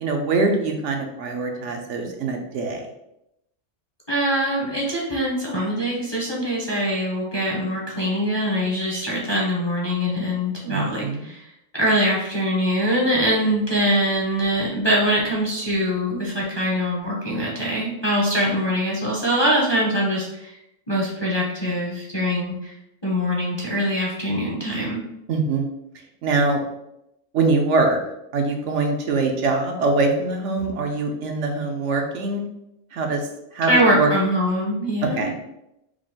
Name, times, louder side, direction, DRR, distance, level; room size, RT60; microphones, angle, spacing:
voice 1, 0.0-2.8 10.7-11.2 25.3-25.7 26.2-26.6 27.3-28.0 28.3-32.5 32.9-33.3 33.5-34.1 35.2-35.3, right 3 dB, 70° right, 3 dB, 0.9 m, -23 dB
voice 2, 4.1-11.4 11.7-20.6 20.9-22.7 23.0-25.0 33.7-35.3, equal, 25° left, -4 dB, 0.7 m, -23 dB
4.9 x 2.0 x 3.6 m, 0.84 s
omnidirectional pair, 1.3 m